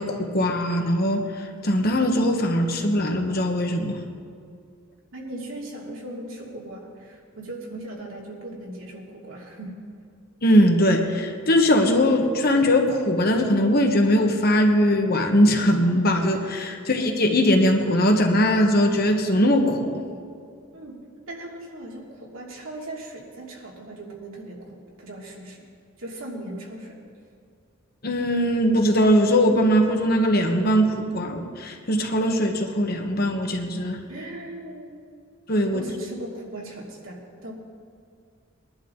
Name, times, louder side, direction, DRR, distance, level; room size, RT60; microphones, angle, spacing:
voice 1, 0.0-4.0 10.4-20.0 28.0-34.0 35.5-35.8, equal, 45° left, 3 dB, 1.4 m, -20 dB
voice 2, 5.1-9.8 20.7-21.0 21.3-25.7 26.0-27.0 34.1-34.9 35.7-37.5, right 1 dB, 75° right, -3 dB, 2.9 m, -38 dB
22.0 x 11.0 x 4.0 m, 2.3 s
head